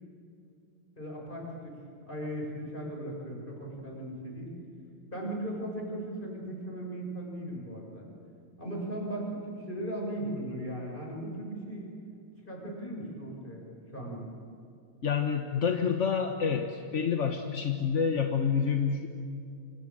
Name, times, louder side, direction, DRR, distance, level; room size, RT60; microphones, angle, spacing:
voice 1, 1.0-1.8 2.1-4.5 5.1-8.1 8.6-11.9 12.5-13.6 13.9-14.3, right 1 dB, 20° left, -1 dB, 7.1 m, -37 dB
voice 2, 15.0-19.1, left 6 dB, 40° left, 4 dB, 1.2 m, -28 dB
27.0 x 26.5 x 7.7 m, 2.4 s
omnidirectional pair, 2.4 m